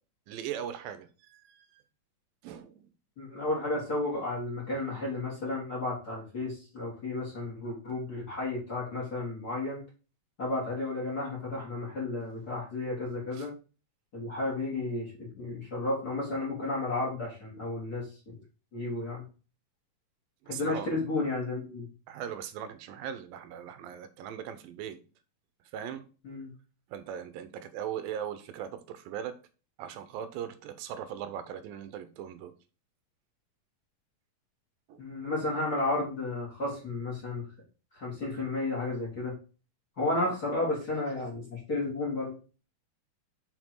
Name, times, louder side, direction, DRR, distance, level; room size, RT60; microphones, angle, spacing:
voice 1, 0.3-1.8 2.4-2.9 13.3-13.5 20.4-20.9 22.1-25.0 25.7-26.0 26.9-29.4 29.8-32.5 34.9-35.0, right 9 dB, 90° right, 2.4 m, -39 dB
voice 2, 3.2-9.8 10.4-13.5 14.1-18.3 18.7-19.2 20.5-21.9 26.2-26.5 35.0-37.5 37.9-39.3 40.0-42.3, left 2 dB, 30° left, 2.4 m, -32 dB
6.0 x 4.4 x 4.5 m
omnidirectional pair, 4.1 m